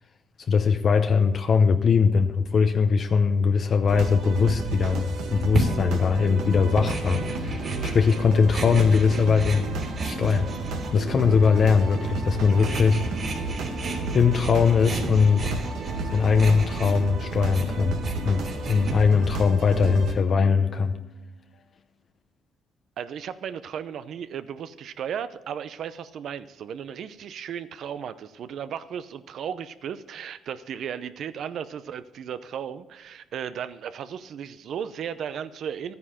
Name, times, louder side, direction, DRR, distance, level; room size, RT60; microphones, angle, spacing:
voice 1, 0.5-9.7 10.0-10.5 10.9-13.0 14.1-15.5 16.0-18.0 18.2-21.0, left 5 dB, 50° left, 6 dB, 0.8 m, -21 dB
sound 1, 3.9-20.1, right 2 dB, 85° right, 1.7 m, -32 dB
sound 2, 5.5-19.3, right 2 dB, 50° right, 3.0 m, -34 dB
sound 3, 18.0-21.6, left 6 dB, 80° left, 1.0 m, -46 dB
voice 2, 23.0-35.9, right 8 dB, 70° right, 13 dB, 0.7 m, -35 dB
12.5 x 9.6 x 4.3 m, 1.0 s
cardioid pair, 90°, 0 cm